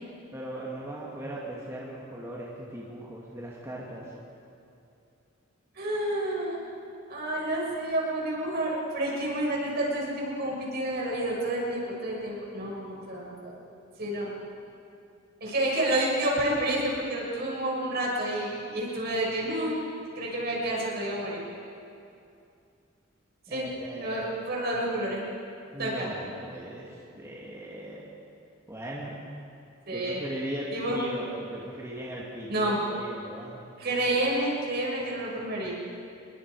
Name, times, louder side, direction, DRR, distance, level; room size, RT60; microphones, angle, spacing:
voice 1, 0.3-4.1 23.5-24.3 24.6-24.7 25.7-28.1 28.7-29.1 29.9-33.6, right 1 dB, 15° right, -5 dB, 2.4 m, -38 dB
voice 2, 5.8-6.6 7.1-13.5 14.0-14.3 15.4-19.8 20.2-21.4 23.5-23.7 24.0-25.2 25.8-26.1 29.9-30.2 30.7-31.0 32.5-32.8 33.8-35.8, right 1 dB, 55° right, -3 dB, 6.4 m, -29 dB
27.5 x 22.0 x 5.0 m, 2.6 s
head